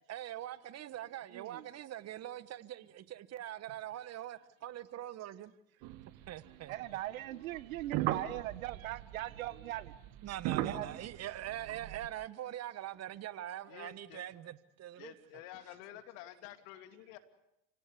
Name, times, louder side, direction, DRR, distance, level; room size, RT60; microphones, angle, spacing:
voice 1, 0.1-5.5 6.3-6.7 10.2-15.1, right 12 dB, 40° right, 16 dB, 1.2 m, -43 dB
voice 2, 1.3-1.7 6.7-9.9 10.6-11.1, right 15 dB, 80° right, 15 dB, 1.5 m, -40 dB
sound 1, 5.8-6.9 7.5-12.1, right 14 dB, 60° right, 2.0 m, -39 dB
voice 3, 13.7-14.2 15.0-17.2, left 12 dB, 65° left, 8 dB, 2.8 m, -50 dB
30.0 x 17.5 x 8.3 m, 0.87 s
hypercardioid pair, 100°, 40 cm